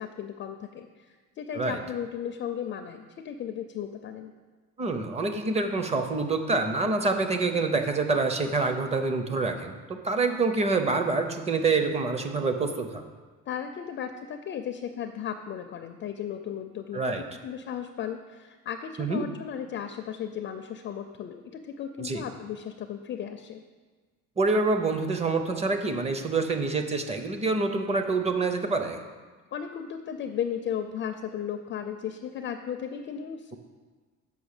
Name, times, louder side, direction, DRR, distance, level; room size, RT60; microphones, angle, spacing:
voice 1, 0.0-4.3 13.5-23.6 29.5-33.6, left 8 dB, 35° left, 7 dB, 0.4 m, -35 dB
voice 2, 4.8-13.1 16.9-17.2 19.0-19.2 22.0-22.2 24.4-29.0, right 3 dB, 20° right, 6 dB, 0.6 m, -26 dB
7.0 x 5.6 x 6.5 m, 1.4 s
cardioid pair, 170°, 34 cm